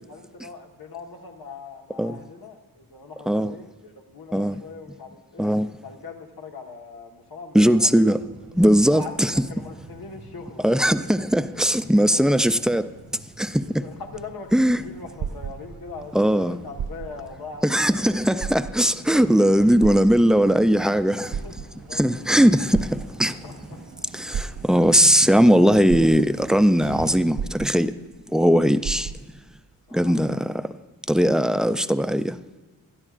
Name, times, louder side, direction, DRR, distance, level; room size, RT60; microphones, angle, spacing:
voice 1, 0.1-5.5 5.8-8.0 8.9-11.1 12.1-12.2 13.6-18.1 21.2-22.0 22.3-22.5 22.7-22.8 23.4-23.8 29.9-30.3 31.3-31.4, left 4 dB, 80° left, 1.4 m, -41 dB
voice 2, 7.5-8.2 8.5-9.5 10.6-12.9 13.4-13.8 14.5-14.8 16.1-16.6 17.6-21.4 21.9-23.4 24.1-27.9 28.3-29.1 29.9-30.7 31.1-32.4, equal, ahead, 0.3 m, -19 dB
sound 1, 8.2-27.1, right 3 dB, 85° right, 1.3 m, -46 dB
sound 2, 14.0-16.1 16.7-17.3 17.8-17.9 18.3-19.1 19.8-20.6 21.1-22.0 22.7-23.5 24.3-25.0 25.5-25.6 25.9-26.6 27.3-28.2 28.4-28.5 28.8-29.5 30.2-30.3, right 7 dB, 70° right, 0.5 m, -32 dB
20.5 x 12.5 x 2.5 m
wide cardioid pair, 120°, 36 cm